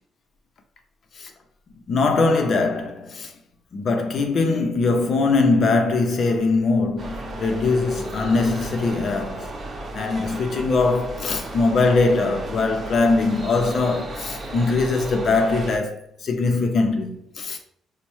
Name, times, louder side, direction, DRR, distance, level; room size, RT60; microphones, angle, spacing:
voice 1, 1.9-3.3 3.7-9.5 9.9-17.6, left 3 dB, 55° left, 0.5 m, -21 dB
sound 1, 7.0-15.8, right 2 dB, 45° right, 0.8 m, -34 dB
4.2 x 2.1 x 3.0 m
cardioid pair, 90°, 0 cm